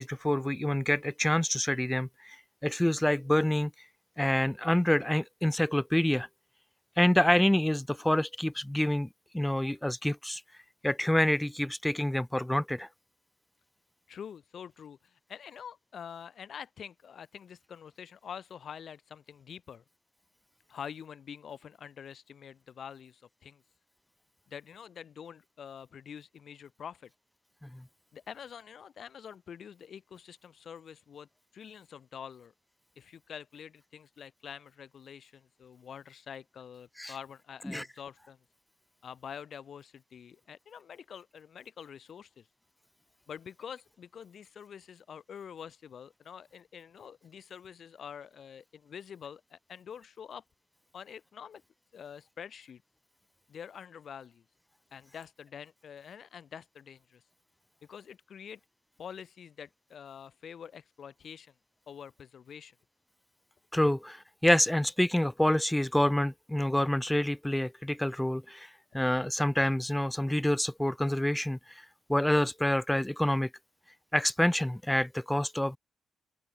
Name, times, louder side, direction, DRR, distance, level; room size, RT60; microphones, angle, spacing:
voice 1, 0.0-2.4 2.6-3.7 4.2-6.3 7.0-9.1 9.3-10.4 10.8-12.9 27.6-27.8 37.0-37.1 37.6-37.9 63.7-71.8 72.1-73.5 74.1-75.8, left 1 dB, 5° left, 0.5 m, -27 dB
voice 2, 14.1-19.8 20.7-23.6 24.5-27.1 28.1-31.3 31.5-32.5 33.0-38.4 39.0-42.5 43.3-50.4 50.9-51.6 51.9-52.8 53.5-54.4 54.9-57.2 57.9-58.6 59.0-61.5 61.9-62.8 68.9-69.0, left 8 dB, 55° left, 4.0 m, -46 dB
open air
cardioid pair, 90°, 0 cm